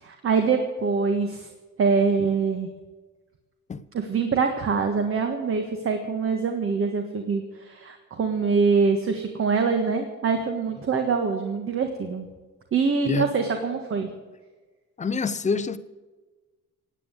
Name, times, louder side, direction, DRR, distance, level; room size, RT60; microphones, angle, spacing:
voice 1, 0.0-1.5 1.8-2.7 3.9-12.3 12.7-14.1, right 5 dB, 45° right, 1.6 m, -24 dB
voice 2, 15.0-15.8, left 4 dB, 25° left, 0.7 m, -26 dB
17.5 x 9.7 x 8.1 m
cardioid pair, 150°, 30 cm